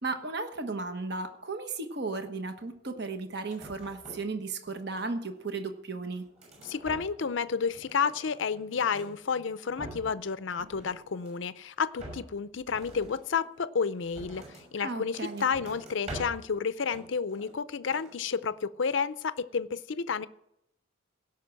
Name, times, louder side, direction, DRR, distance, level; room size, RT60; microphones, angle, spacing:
voice 1, 0.0-6.3 14.8-15.4, right 3 dB, 55° right, 7 dB, 1.2 m, -35 dB
sound 1, 3.4-4.4 4.6-5.4 5.9-7.4 7.7-9.1 9.5-10.3 10.6-11.5 12.0-14.7 15.1-16.5 16.9-17.6 17.9-18.2, right 1 dB, 35° right, 6.2 m, -46 dB
voice 2, 6.6-20.3, left 6 dB, 65° left, 15 dB, 0.5 m, -31 dB
17.0 x 6.0 x 7.5 m, 0.79 s
head